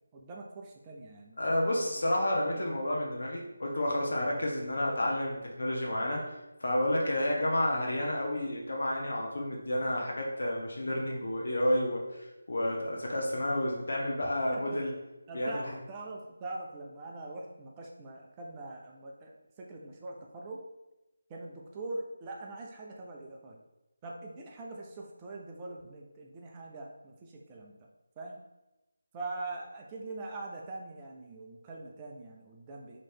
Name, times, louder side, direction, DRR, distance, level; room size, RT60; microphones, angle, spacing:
voice 1, 0.1-2.0 14.5-14.8 15.3-20.6 21.3-23.6 24.0-27.9 28.2-28.4 29.1-33.0, right 2 dB, 20° right, -1 dB, 0.5 m, -43 dB
voice 2, 1.4-6.2 6.6-14.9 15.3-15.8, left 1 dB, 65° left, -2 dB, 0.9 m, -30 dB
3.1 x 3.0 x 4.3 m, 1.0 s
figure-of-eight pair, 165°, 0 cm